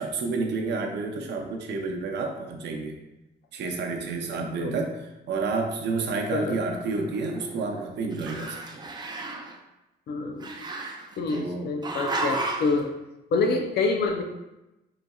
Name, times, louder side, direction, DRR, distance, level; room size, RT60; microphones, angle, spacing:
voice 1, 0.0-3.0 3.5-8.9 11.3-11.7, right 3 dB, 70° right, 2 dB, 0.6 m, -30 dB
Growling, 6.6-7.8 8.1-9.5 10.4-11.4 11.8-12.8, right 2 dB, 25° right, 0.4 m, -33 dB
voice 2, 10.1-10.7 11.2-12.9 13.3-14.2, left 3 dB, 65° left, 4 dB, 0.5 m, -26 dB
4.0 x 3.9 x 2.3 m, 0.98 s
cardioid pair, 160°, 18 cm